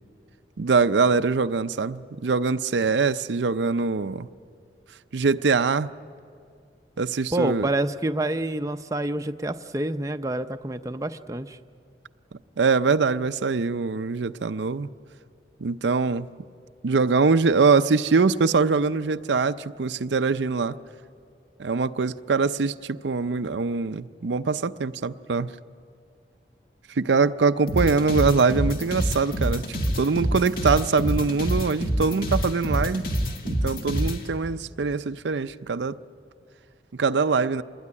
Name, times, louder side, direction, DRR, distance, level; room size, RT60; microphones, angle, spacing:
voice 1, 0.6-4.3 5.1-5.9 7.0-7.7 12.6-14.9 15.6-16.3 16.8-20.8 21.6-25.5 27.0-33.1 33.4-36.0 36.9-37.6, right 4 dB, 85° right, 11 dB, 0.6 m, -23 dB
voice 2, 7.3-11.6, right 1 dB, 20° right, 7 dB, 0.5 m, -27 dB
sound 1, 27.7-34.2, equal, 55° left, 2.3 m, -26 dB
26.5 x 20.5 x 9.8 m, 2.3 s
head